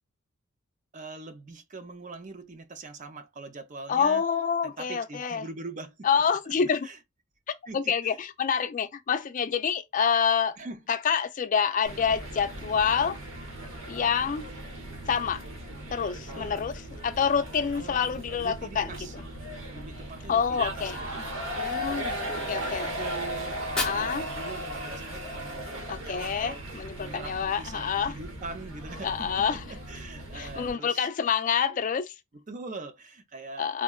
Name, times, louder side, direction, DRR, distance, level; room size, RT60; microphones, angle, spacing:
voice 1, 0.9-4.2 4.6-6.5 6.8-7.0 7.7-8.2 10.6-10.9 16.3-16.7 17.8-19.3 19.7-21.4 21.9-26.6 27.0-31.1 32.3-33.8, right 3 dB, 35° right, 0.5 m, -43 dB
voice 2, 3.9-5.4 6.0-6.9 7.7-10.6 10.9-13.2 13.9-14.5 15.1-15.4 15.9-18.9 20.3-21.0 21.6-22.8 23.8-24.3 25.9-28.1 29.0-29.6 30.3-32.1 33.6-33.8, left 6 dB, 35° left, 0.3 m, -27 dB
sound 1, 11.9-30.7, equal, 65° right, 1.0 m, -37 dB
Fire, 23.5-25.5, left 2 dB, 5° left, 0.6 m, -37 dB
3.7 x 2.1 x 2.2 m
head